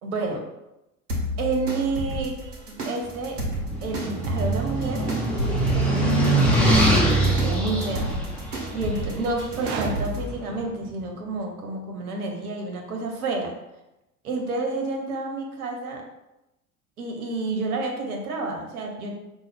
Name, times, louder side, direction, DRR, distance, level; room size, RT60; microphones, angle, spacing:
voice 1, 0.0-0.4 1.4-2.4 2.8-3.4 3.8-5.1 5.7-6.2 6.5-8.1 8.7-13.5 14.2-16.0 17.0-19.2, right 3 dB, 70° right, 1 dB, 1.1 m, -30 dB
sound 1, 1.1-10.2, equal, 90° right, 0.8 m, -32 dB
sound 2, 3.3-9.6, right 2 dB, 5° left, 0.9 m, -23 dB
sound 3, 9.4-11.5, right 5 dB, 45° right, 0.6 m, -35 dB
5.3 x 2.4 x 3.4 m, 0.93 s
figure-of-eight pair, 70°, 45 cm